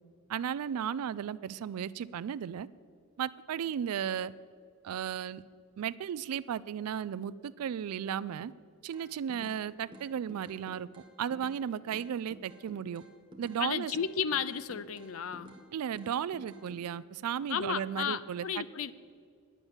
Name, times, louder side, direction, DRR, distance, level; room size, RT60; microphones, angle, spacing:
voice 1, 0.3-2.7 3.2-4.3 4.8-5.4 5.8-8.5 8.8-10.9 11.2-13.0 13.4-13.9 15.7-18.6, right 8 dB, 90° right, 17 dB, 0.3 m, -35 dB
sound 1, 8.9-9.6 9.9-11.6 11.9-13.6 13.9-15.6 15.9-16.8, right 1 dB, 20° right, 0.9 m, -51 dB
voice 2, 13.6-15.5 17.5-18.9, left 7 dB, 70° left, 16 dB, 0.5 m, -33 dB
9.9 x 9.3 x 7.1 m, 2.2 s
head